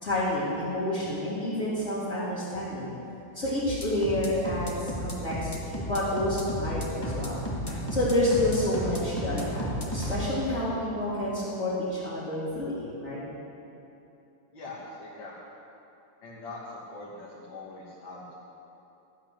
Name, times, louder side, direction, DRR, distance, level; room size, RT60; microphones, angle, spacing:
voice 1, 0.0-2.9 3.3-7.4 7.9-13.2, left 1 dB, 35° left, -12 dB, 3.0 m, -29 dB
sound 1, 3.7-10.2, equal, 15° left, 1.6 m, -33 dB
voice 2, 14.5-15.3 16.2-18.4, left 2 dB, 75° left, -6 dB, 2.4 m, -42 dB
14.0 x 8.9 x 6.7 m, 2.9 s
omnidirectional pair, 2.1 m